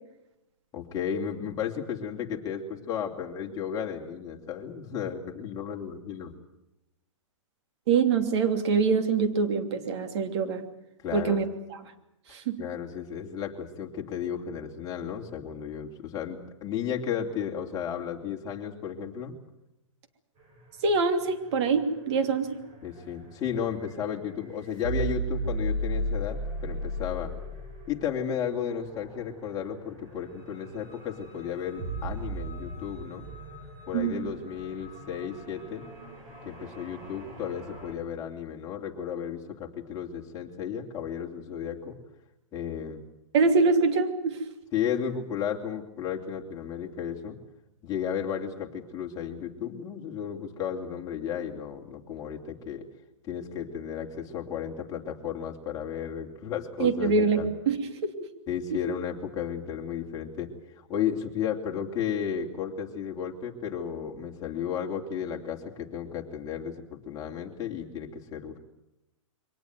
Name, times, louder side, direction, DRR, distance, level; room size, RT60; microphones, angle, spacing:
voice 1, 0.7-6.3 11.0-11.4 12.6-19.3 22.8-27.3 27.9-33.3 33.9-35.8 36.4-42.0 42.5-43.0 44.7-47.4 47.8-52.8 53.2-57.5 58.5-68.6, left 8 dB, 20° left, 0 dB, 2.9 m, -34 dB
voice 2, 7.9-10.6 11.1-11.4 12.3-12.6 20.8-22.6 33.9-34.3 43.3-44.4 56.8-58.1, right 4 dB, 55° right, 7 dB, 2.9 m, -24 dB
sound 1, 20.4-37.9, right 1 dB, 30° right, 5.7 m, -37 dB
23.0 x 19.0 x 9.3 m, 0.92 s
hypercardioid pair, 145°, 17 cm